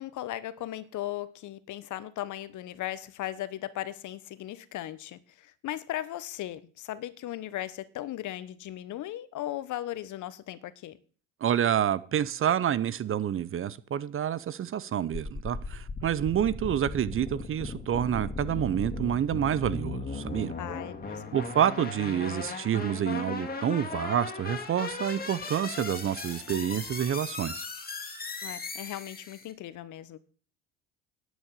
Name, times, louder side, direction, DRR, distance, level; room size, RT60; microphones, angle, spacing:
voice 1, 0.0-11.0 20.6-21.4 28.4-30.2, left 13 dB, 55° left, 1.1 m, -37 dB
voice 2, 11.4-20.5 21.3-27.7, right 10 dB, 35° right, 0.7 m, -28 dB
sound 1, 15.1-29.5, left 3 dB, 25° left, 2.4 m, -37 dB
10.5 x 6.3 x 7.6 m
hypercardioid pair, 70°, 37 cm